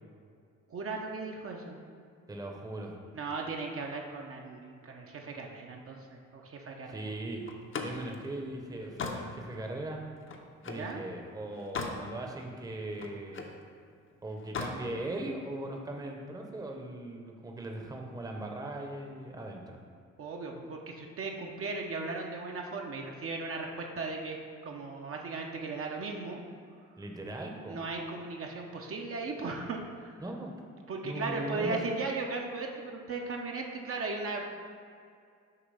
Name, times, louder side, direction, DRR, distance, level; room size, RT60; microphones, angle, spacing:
voice 1, 0.7-1.8 3.1-7.1 10.7-11.0 20.2-24.4 24.6-26.4 27.7-30.1 30.9-34.5, right 3 dB, 50° right, 1 dB, 0.6 m, -37 dB
voice 2, 2.3-3.0 6.9-7.5 7.8-10.0 10.6-13.5 14.2-19.8 27.0-27.8 30.2-30.5 31.0-31.8, right 1 dB, 10° right, 2 dB, 0.7 m, -39 dB
Slam, 7.5-10.9 11.4-12.1 12.4-13.6 14.4-14.8, left 4 dB, 45° left, 0.7 m, -39 dB
6.7 x 2.9 x 5.4 m, 2.3 s
cardioid pair, 90°, 30 cm